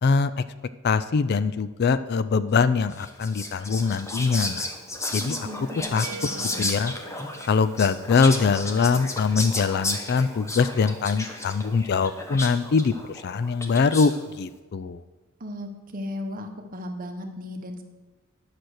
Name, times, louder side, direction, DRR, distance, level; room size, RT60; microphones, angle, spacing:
voice 1, 0.0-0.3 0.8-4.7 5.1-5.4 5.9-6.1 6.6-6.9 7.5-15.0, left 5 dB, 50° left, 13 dB, 0.4 m, -23 dB
Whispering, 2.9-14.2, left 2 dB, 15° left, 0.9 m, -33 dB
voice 2, 5.2-6.7 15.4-17.8, left 1 dB, 45° right, 4 dB, 1.1 m, -36 dB
sound 1, 6.0-8.9, right 5 dB, 85° right, 0.5 m, -44 dB
10.5 x 6.0 x 6.4 m, 1.2 s
head